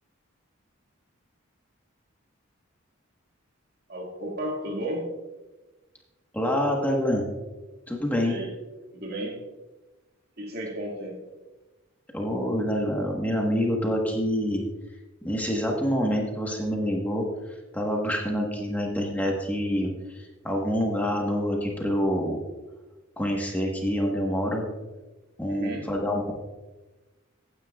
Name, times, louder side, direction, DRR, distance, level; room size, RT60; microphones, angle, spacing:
voice 1, 3.9-5.1 8.2-8.6 8.9-9.4 10.4-11.2 25.5-25.9, right 1 dB, 50° right, 0 dB, 1.9 m, -33 dB
voice 2, 6.3-7.3 7.9-8.3 12.1-14.6 15.2-17.3 17.7-22.4 23.2-24.6 25.4-26.3, equal, 10° left, 0 dB, 1.2 m, -26 dB
15.5 x 9.6 x 2.3 m, 1.1 s
head